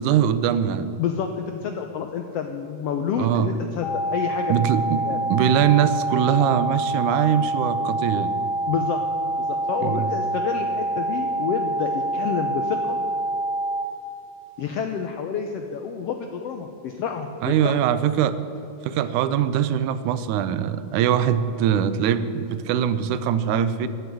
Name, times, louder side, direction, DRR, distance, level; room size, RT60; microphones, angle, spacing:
voice 1, 0.0-0.9 3.2-3.5 4.5-8.3 9.8-10.1 17.4-18.4 18.8-23.9, right 9 dB, 80° right, 13 dB, 2.0 m, -22 dB
voice 2, 1.0-4.6 5.0-5.2 8.7-9.0 9.3-13.0 14.6-17.8, left 7 dB, 85° left, 5 dB, 1.3 m, -29 dB
sound 1, 3.8-13.8, right 1 dB, 35° left, 2.8 m, -26 dB
13.0 x 8.0 x 9.7 m, 2.9 s
omnidirectional pair, 3.7 m